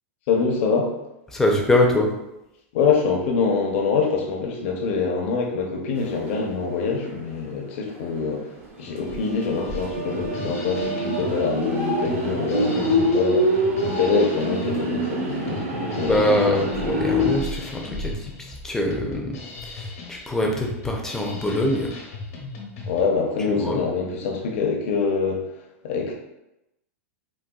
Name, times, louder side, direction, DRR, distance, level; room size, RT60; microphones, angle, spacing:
voice 1, 0.3-1.0 2.7-8.5 8.8-13.5 13.8-16.1 22.9-25.4 25.8-26.1, left 5 dB, 55° left, 1 dB, 0.7 m, -25 dB
voice 2, 1.3-2.1 16.0-19.4 19.6-22.0 23.5-23.8, left 1 dB, 5° left, 0 dB, 0.4 m, -23 dB
sound 1, 6.0-7.3 7.6-7.7 8.4-17.4, equal, 70° right, 0.9 m, -26 dB
Drum kit, 9.7-23.0, left 3 dB, 75° left, 1.0 m, -38 dB
4.1 x 2.2 x 2.3 m, 0.90 s
supercardioid pair, 145°, 8 cm